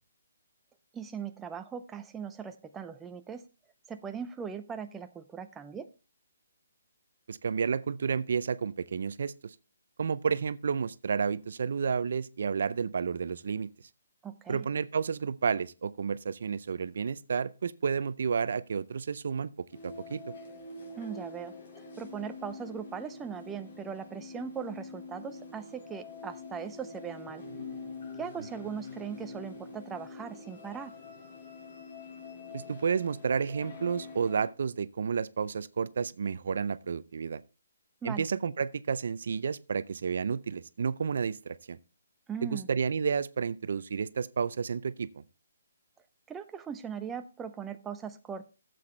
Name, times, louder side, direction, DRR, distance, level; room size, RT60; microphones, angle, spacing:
voice 1, 0.9-3.4 3.9-5.9 14.2-14.7 21.0-21.5 22.0-27.4 28.2-30.9 38.0-38.3 42.3-42.7 46.3-48.5, right 7 dB, 10° right, 0.5 m, -39 dB
voice 2, 7.3-9.3 10.0-13.7 14.5-19.5 19.8-20.2 32.5-37.4 38.0-41.8 42.4-45.1, right 6 dB, 65° right, 0.5 m, -31 dB
sound 1, 19.7-34.5, left 3 dB, 60° left, 4.5 m, -45 dB
11.5 x 7.7 x 3.2 m
hypercardioid pair, 160°, 0 cm